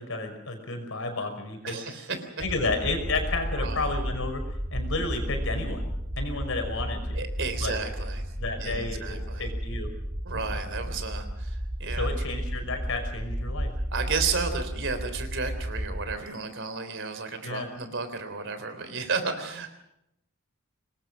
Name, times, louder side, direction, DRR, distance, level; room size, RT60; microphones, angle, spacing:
voice 1, 0.0-1.8 2.4-4.4 4.7-5.9 6.2-7.2 7.6-7.8 8.4-9.9 12.0-13.7 17.4-17.7, left 3 dB, 65° left, 5 dB, 5.7 m, -31 dB
voice 2, 1.6-2.3 3.5-3.9 7.1-8.3 8.6-9.5 10.3-12.1 13.9-19.7, right 4 dB, 60° right, 9 dB, 3.6 m, -33 dB
sound 1, 2.4-16.1, equal, 30° right, 1.9 m, -33 dB
25.5 x 21.0 x 6.3 m, 0.82 s
head